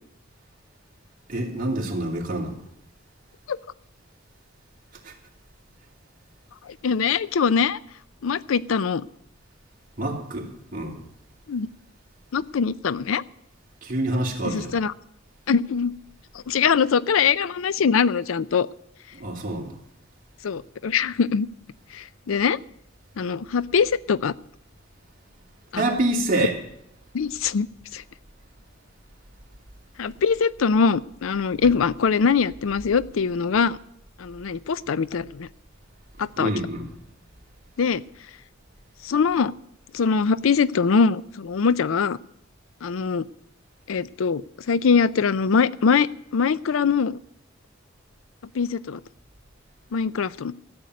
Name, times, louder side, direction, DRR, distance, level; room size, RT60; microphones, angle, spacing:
voice 1, 1.3-2.6 5.0-5.1 10.0-11.0 13.8-14.7 19.2-19.8 25.7-26.5 36.4-36.9, right 1 dB, 45° right, -1 dB, 2.8 m, -26 dB
voice 2, 6.8-7.8 8.2-9.0 11.5-11.7 12.3-13.2 14.4-14.9 15.5-15.9 16.5-18.7 20.4-21.5 21.9-22.6 23.2-24.3 25.7-25.8 27.1-27.7 27.9-28.0 30.0-33.8 34.2-35.5 36.2-36.5 37.8-38.0 39.0-39.5 39.9-42.2 42.8-43.3 43.9-44.4 44.7-46.1 46.3-47.2 48.5-49.0 49.9-50.5, left 5 dB, 85° left, 18 dB, 0.5 m, -22 dB
14.0 x 7.9 x 9.5 m, 0.78 s
head